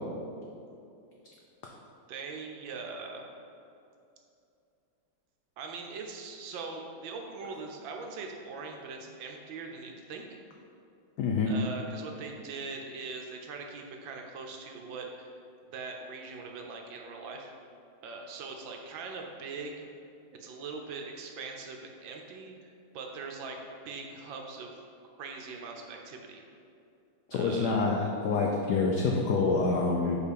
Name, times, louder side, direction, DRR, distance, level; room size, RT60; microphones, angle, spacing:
voice 1, 2.1-3.3 5.6-10.2 11.5-15.3 15.7-17.5 18.0-19.9 20.4-24.8 25.2-26.4 27.3-27.8, right 4 dB, 70° right, 2 dB, 1.3 m, -41 dB
voice 2, 11.2-11.5 27.3-30.2, left 4 dB, 85° left, 0 dB, 0.9 m, -27 dB
4.8 x 4.6 x 5.1 m, 2.6 s
omnidirectional pair, 2.4 m